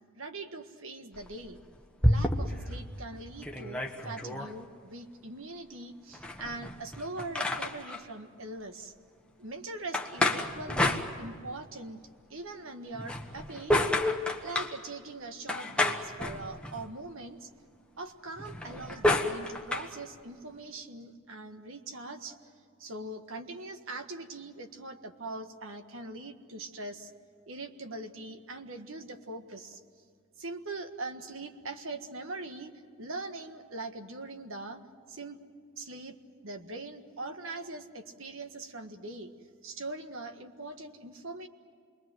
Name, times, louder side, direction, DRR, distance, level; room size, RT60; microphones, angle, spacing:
voice 1, 0.1-1.6 2.0-8.9 9.4-12.0 12.3-13.7 14.4-17.5 18.0-22.5 22.8-27.1 27.5-29.8 30.4-32.7 33.0-34.8 35.1-35.4 35.8-36.2 36.4-39.3 39.6-41.5, right 2 dB, 65° right, 7 dB, 1.6 m, -42 dB
sound 1, 1.1-2.7 3.1-3.2 3.4-4.5 6.1-8.0 9.9-11.6 12.9-14.8 15.5-16.9 18.4-19.9, left 1 dB, 5° left, 1.3 m, -30 dB
27.5 x 22.0 x 7.9 m, 2.2 s
head